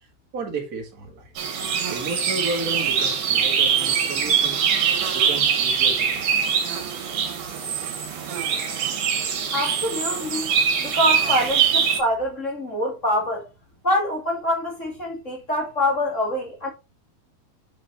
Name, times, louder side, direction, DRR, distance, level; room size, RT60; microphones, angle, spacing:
voice 1, 0.3-1.3 1.9-4.7 5.1-6.3, right 2 dB, 30° right, 2.2 m, -33 dB
sound 1, 1.4-12.0, right 7 dB, 70° right, 3.1 m, -23 dB
voice 2, 9.5-10.5 10.8-13.5 13.8-16.7, left 1 dB, 30° left, 1.8 m, -25 dB
6.2 x 5.6 x 4.0 m
omnidirectional pair, 3.7 m